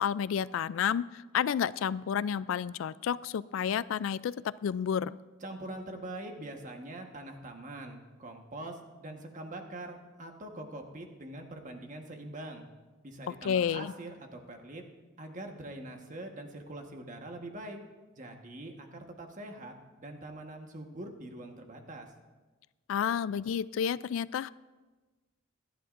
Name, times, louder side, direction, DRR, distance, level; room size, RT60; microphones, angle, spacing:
voice 1, 0.0-4.3 4.6-5.2 13.4-13.9 22.9-24.5, left 8 dB, 75° left, 18 dB, 0.3 m, -30 dB
voice 2, 5.4-12.6 13.0-14.8 15.2-17.8 18.1-22.1, right 1 dB, 40° right, 3 dB, 1.3 m, -43 dB
25.5 x 10.5 x 2.5 m, 1.2 s
head